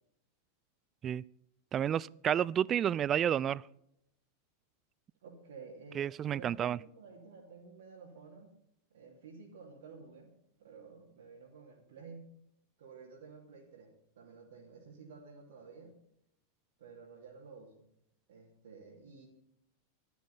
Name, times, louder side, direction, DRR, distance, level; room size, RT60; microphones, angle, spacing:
voice 1, 1.7-3.6 6.0-6.8, right 9 dB, 25° right, 23 dB, 0.4 m, -30 dB
voice 2, 5.2-8.6 8.9-10.3 10.6-12.3 12.8-16.0 16.8-17.9 18.3-19.3, right 4 dB, 60° right, -4 dB, 2.9 m, -52 dB
14.5 x 12.5 x 4.2 m, 0.77 s
figure-of-eight pair, 90°, 0 cm